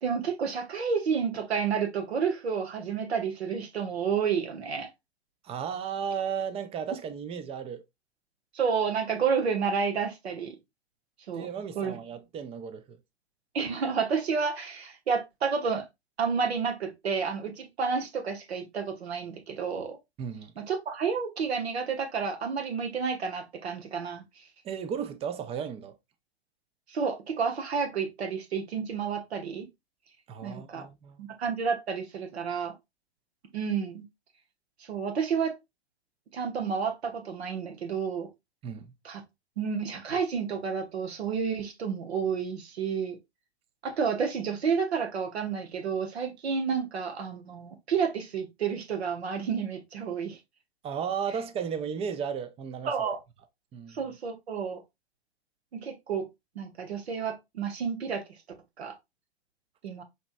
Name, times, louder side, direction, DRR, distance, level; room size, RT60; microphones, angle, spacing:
voice 1, 0.0-4.9 8.5-10.6 11.3-11.5 11.8-12.0 13.5-15.9 16.2-20.0 20.6-24.2 26.9-29.7 30.4-30.9 31.2-32.7 33.5-34.0 34.9-35.5 36.3-38.3 39.0-39.2 39.6-43.2 43.8-50.4 52.8-53.2 53.9-54.8 55.7-56.3 56.6-58.2 58.8-59.0 59.8-60.0, right 6 dB, 75° right, 1.0 m, -30 dB
voice 2, 5.4-7.8 11.3-13.0 20.2-20.5 24.6-26.0 30.3-31.2 38.6-38.9 50.8-52.9 53.7-54.0, right 7 dB, 20° right, 0.5 m, -34 dB
5.3 x 2.9 x 2.4 m
hypercardioid pair, 105°, 32 cm